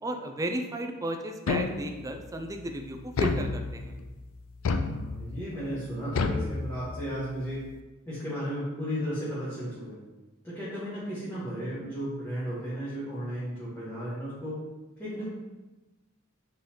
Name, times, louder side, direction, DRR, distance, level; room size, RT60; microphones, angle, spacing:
voice 1, 0.0-4.0, right 1 dB, 15° right, 4 dB, 0.4 m, -34 dB
sound 1, 1.5-2.2 3.2-4.0 4.6-5.4 6.2-7.2, left 4 dB, 70° left, 0.4 m, -30 dB
voice 2, 4.9-7.6 8.1-10.0 10.4-14.6 15.0-15.3, equal, 10° left, -11 dB, 1.1 m, -34 dB
3.9 x 3.2 x 4.1 m, 1.1 s
head